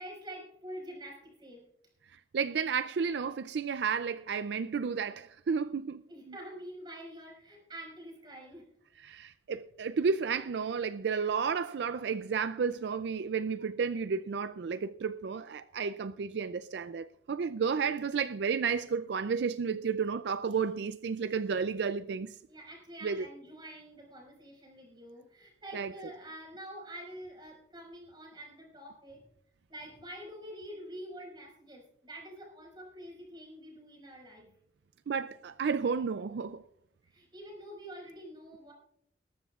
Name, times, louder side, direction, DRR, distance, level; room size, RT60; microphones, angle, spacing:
voice 1, 0.0-1.6 6.1-8.7 22.5-29.3 29.7-34.5 37.0-38.7, right 1 dB, 25° right, 5.5 m, -46 dB
voice 2, 2.1-6.0 6.3-6.4 9.0-22.4 23.0-23.2 25.7-25.9 35.1-36.6, right 5 dB, 70° right, 0.4 m, -32 dB
20.5 x 12.5 x 2.4 m
head